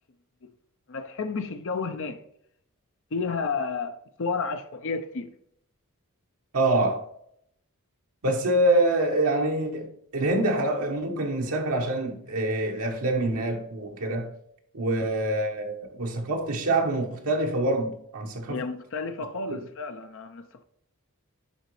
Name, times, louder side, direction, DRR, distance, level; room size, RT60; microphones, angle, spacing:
voice 1, 0.9-2.2 3.1-5.3 18.5-20.6, left 4 dB, 60° left, 0.6 m, -31 dB
voice 2, 6.5-7.1 8.2-14.3 14.7-18.6 19.5-19.6, right 1 dB, 75° right, 1.0 m, -26 dB
11.0 x 4.0 x 3.1 m
head